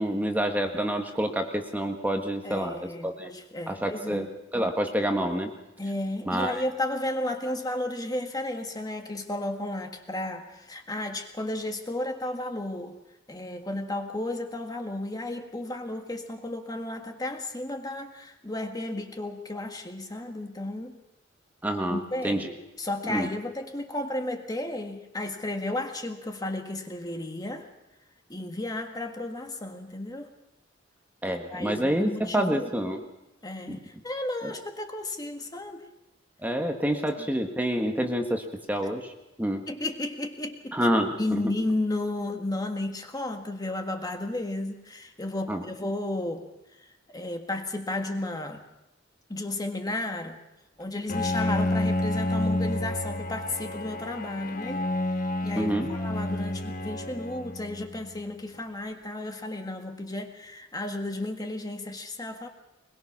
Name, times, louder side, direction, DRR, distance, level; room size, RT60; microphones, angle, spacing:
voice 1, 0.0-3.3 3.7-4.3 4.5-5.5 6.2-6.6 21.6-22.5 23.0-23.3 31.2-33.1 33.7-33.8 34.4-34.5 36.4-39.1 39.4-39.6 40.7-41.4 45.5-45.6 55.5-55.9, equal, 10° right, 4 dB, 1.6 m, -28 dB
voice 2, 2.4-4.3 5.8-13.0 13.3-21.0 21.9-22.4 22.8-27.7 28.3-30.3 31.3-32.7 33.4-35.8 37.2-37.3 39.7-40.8 41.2-46.5 47.1-48.6 49.3-50.4 50.8-54.9 55.4-62.5, left 1 dB, 20° left, 4 dB, 1.6 m, -33 dB
Bowed string instrument, 51.1-58.2, left 1 dB, 45° left, 1.5 m, -30 dB
22.0 x 21.5 x 6.0 m, 0.94 s
head